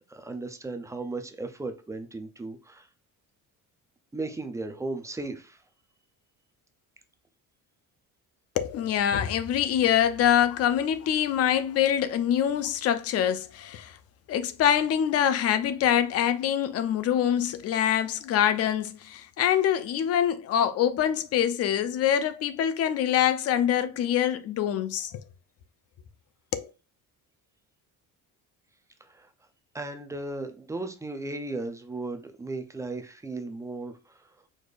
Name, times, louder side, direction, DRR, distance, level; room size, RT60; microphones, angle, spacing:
voice 1, 0.1-2.9 4.1-5.6 29.0-29.3 29.7-34.4, right 2 dB, 10° right, 0.4 m, -36 dB
voice 2, 8.6-14.0 14.3-25.2 26.5-26.7, left 10 dB, 45° left, 0.5 m, -25 dB
5.0 x 4.1 x 2.4 m
cardioid pair, 175°, 34 cm